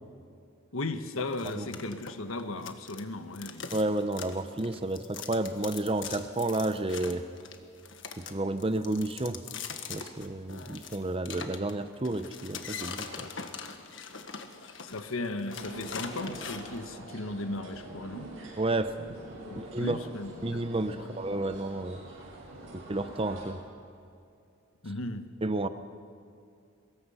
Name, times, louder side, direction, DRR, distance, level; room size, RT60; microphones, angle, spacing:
voice 1, 0.7-3.6 14.8-18.3 19.5-20.6 21.0-21.1 24.8-25.2, left 2 dB, 85° left, 8 dB, 1.3 m, -36 dB
sound 1, 1.3-3.1 3.3-16.8, left 6 dB, 65° left, 1.5 m, -42 dB
voice 2, 3.7-7.2 8.2-9.4 9.9-13.1 18.6-18.9 19.5-20.0 20.4-22.0 22.9-23.6 25.4-25.7, right 2 dB, 25° right, 11 dB, 0.8 m, -31 dB
sound 2, 15.5-23.5, right 2 dB, 75° right, 7.0 m, -45 dB
23.5 x 21.5 x 5.7 m, 2.5 s
head